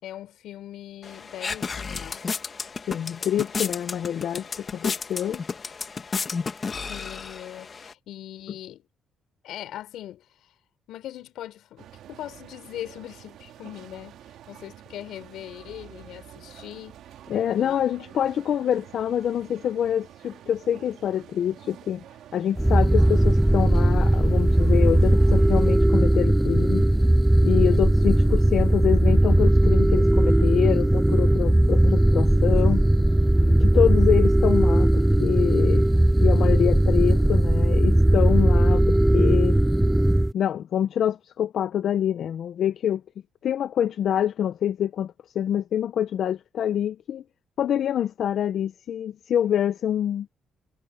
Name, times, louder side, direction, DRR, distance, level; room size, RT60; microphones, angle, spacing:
voice 1, 0.0-2.2 6.8-8.8 9.4-10.2 10.9-16.9 17.5-17.8 27.6-27.9 38.6-38.8, left 12 dB, 80° left, 5.9 m, -40 dB
sound 1, 1.0-7.9, left 5 dB, 40° left, 1.5 m, -33 dB
voice 2, 2.9-5.4 17.3-22.0 22.3-26.8 27.4-32.8 33.6-35.8 36.2-39.6 40.3-43.0 43.4-47.2 47.6-50.3, left 9 dB, 65° left, 0.8 m, -26 dB
sound 2, 11.8-25.8, right 11 dB, 80° right, 2.8 m, -48 dB
sound 3, 22.6-40.3, right 1 dB, 5° right, 0.4 m, -18 dB
cardioid pair, 90°, 0 cm